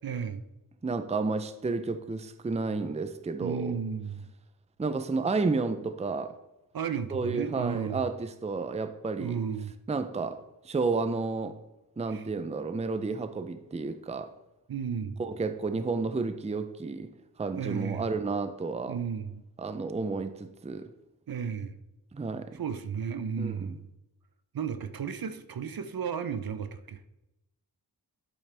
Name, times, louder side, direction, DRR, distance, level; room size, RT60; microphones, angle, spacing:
voice 1, 0.0-0.4 3.4-4.3 6.7-8.1 9.2-9.7 12.1-12.3 14.7-15.2 17.6-18.1 18.9-19.4 21.3-21.8 22.5-23.9 24.5-27.1, right 7 dB, 60° right, 0.7 m, -34 dB
voice 2, 0.8-3.8 4.8-6.4 7.1-9.4 9.9-10.4 10.6-11.6 12.0-14.3 15.2-17.1 17.4-19.0 19.6-20.9 22.1-22.6 23.4-23.7, right 4 dB, 15° right, 0.5 m, -31 dB
11.5 x 5.1 x 3.4 m
cardioid pair, 55°, 41 cm